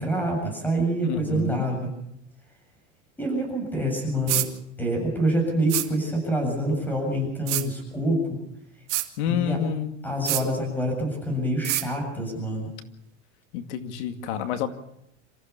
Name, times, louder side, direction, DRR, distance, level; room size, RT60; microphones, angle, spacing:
voice 1, 0.0-1.9 3.2-4.4 4.8-8.4 9.3-9.6 10.0-12.7, right 1 dB, 5° left, 3 dB, 7.6 m, -26 dB
voice 2, 1.0-1.6 9.2-10.0 13.5-14.7, left 9 dB, 70° left, 7 dB, 2.3 m, -28 dB
sound 1, 4.3-4.5 5.7-5.9 7.5-7.7 8.9-9.1 10.3-10.4 11.6-11.9, right 18 dB, 75° right, 2.3 m, -25 dB
27.0 x 15.0 x 7.0 m, 0.76 s
supercardioid pair, 150°, 36 cm